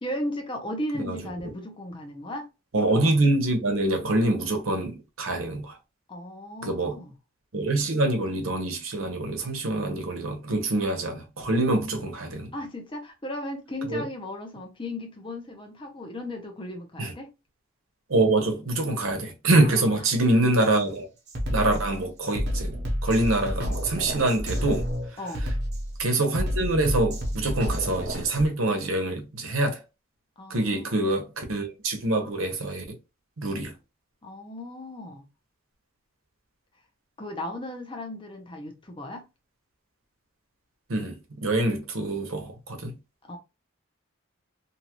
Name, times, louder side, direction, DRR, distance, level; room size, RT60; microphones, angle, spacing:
voice 1, 0.0-2.5 6.1-7.1 12.5-17.3 19.6-20.0 25.2-25.5 30.4-31.1 34.2-35.2 37.2-39.2 43.2-43.4, left 1 dB, 25° left, 0.7 m, -36 dB
voice 2, 2.7-5.8 6.6-7.0 7.5-12.5 13.9-14.0 17.0-17.1 18.1-21.1 21.5-22.8 23.0-25.2 26.0-29.8 30.5-32.9 33.4-33.7 40.9-42.9, right 2 dB, 90° right, 0.9 m, -25 dB
Drum kit, 20.6-20.8 21.3-28.5, equal, 55° right, 0.9 m, -30 dB
2.7 x 2.5 x 2.9 m
head